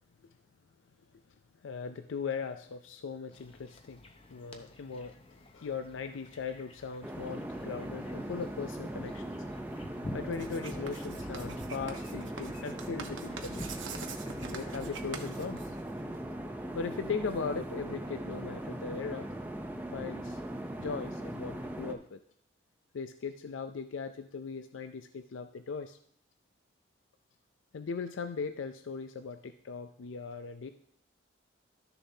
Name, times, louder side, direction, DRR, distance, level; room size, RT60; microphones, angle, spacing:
voice 1, 1.6-4.0 4.3-9.4 10.1-13.7 14.5-15.8 16.7-19.3 19.9-20.4 20.8-22.2 22.9-26.0 27.7-30.7, left 5 dB, 90° left, 9 dB, 0.4 m, -39 dB
sound 1, 3.3-15.7, left 1 dB, 30° left, 0.7 m, -49 dB
sound 2, 7.0-21.9, right 1 dB, 10° right, 0.6 m, -40 dB
Writing, 10.3-16.2, right 5 dB, 90° right, 1.0 m, -45 dB
12.5 x 6.7 x 2.7 m, 0.67 s
head